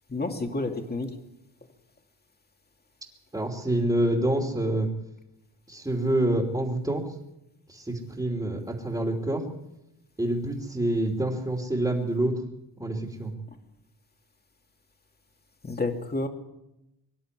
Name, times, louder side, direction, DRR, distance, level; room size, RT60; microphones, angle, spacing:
voice 1, 0.1-1.2 15.6-16.3, left 2 dB, 25° left, 3 dB, 2.6 m, -30 dB
voice 2, 3.3-4.9 5.7-7.0 7.7-9.4 10.2-12.3 12.8-13.3, right 1 dB, 10° right, 1 dB, 3.0 m, -27 dB
25.0 x 11.5 x 9.8 m, 0.90 s
wide cardioid pair, 125°, 39 cm